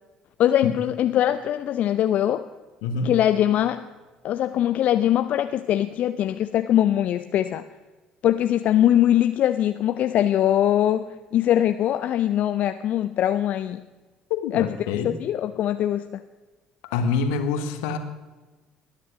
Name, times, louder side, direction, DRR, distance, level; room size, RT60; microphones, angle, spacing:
voice 1, 0.4-2.5 3.0-3.9 4.2-7.6 8.2-11.1 11.3-13.8 14.5-14.7 15.0-16.2, left 11 dB, 50° left, 10 dB, 0.6 m, -22 dB
voice 2, 2.8-3.1 14.3-15.1 16.9-18.0, left 5 dB, 65° left, 8 dB, 1.6 m, -26 dB
20.5 x 10.5 x 6.1 m, 1.2 s
figure-of-eight pair, 55°, 3 cm